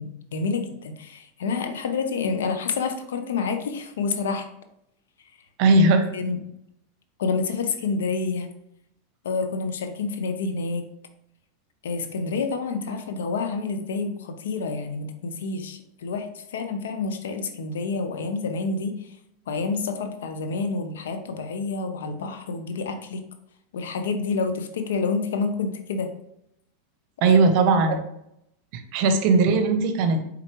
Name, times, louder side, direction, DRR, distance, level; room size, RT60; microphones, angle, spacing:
voice 1, 0.0-4.5 6.1-6.4 7.2-8.5 9.2-10.9 11.8-19.0 19.5-23.2 23.7-26.1 27.3-27.4, left 4 dB, 85° left, 7 dB, 0.6 m, -28 dB
voice 2, 5.6-6.0 27.2-28.0 28.7-30.3, right 3 dB, 55° right, 7 dB, 0.7 m, -19 dB
4.6 x 3.7 x 3.0 m, 0.77 s
hypercardioid pair, 115°, 0 cm